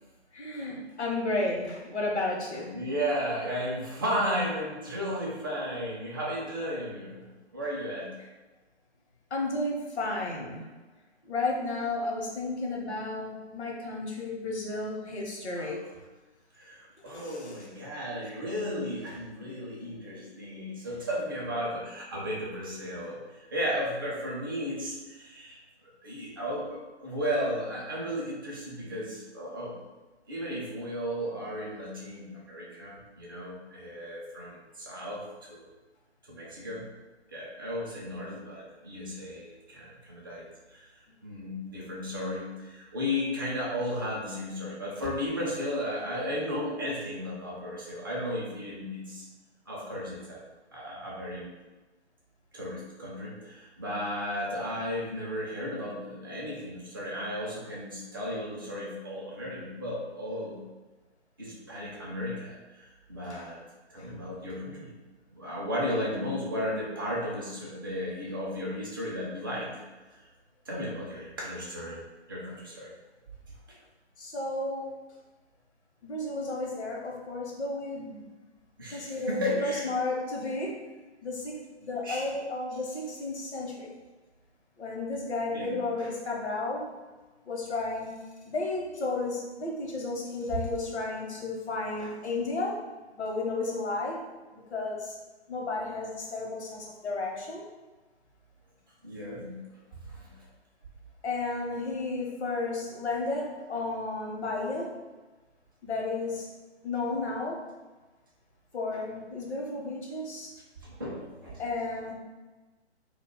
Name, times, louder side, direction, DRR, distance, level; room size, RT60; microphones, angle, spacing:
voice 1, 0.3-2.8 9.3-10.6 11.3-15.8 17.1-17.6 63.3-63.5 64.0-64.1 74.2-75.0 76.0-78.3 78.9-80.8 81.2-83.9 84.8-86.9 87.5-88.1 88.5-92.8 93.1-94.3 94.5-95.2 95.5-97.7 101.2-105.0 105.8-106.5 106.8-107.6 108.7-110.5 111.6-112.1, left 2 dB, 70° left, -1 dB, 0.8 m, -33 dB
voice 2, 2.7-7.3 7.5-8.1 15.6-15.7 16.6-25.6 26.0-29.8 30.3-35.2 35.5-35.7 36.2-36.9 37.3-40.9 41.2-49.3 49.7-50.4 50.7-51.5 52.5-60.6 61.4-63.6 63.9-64.9 65.3-69.7 70.7-72.0 72.3-72.9 78.8-79.9 82.0-82.3 85.5-85.8 99.0-99.6 100.0-100.3 110.8-111.6, equal, 20° right, -6 dB, 0.4 m, -34 dB
2.2 x 2.0 x 3.6 m, 1.2 s
figure-of-eight pair, 135°, 34 cm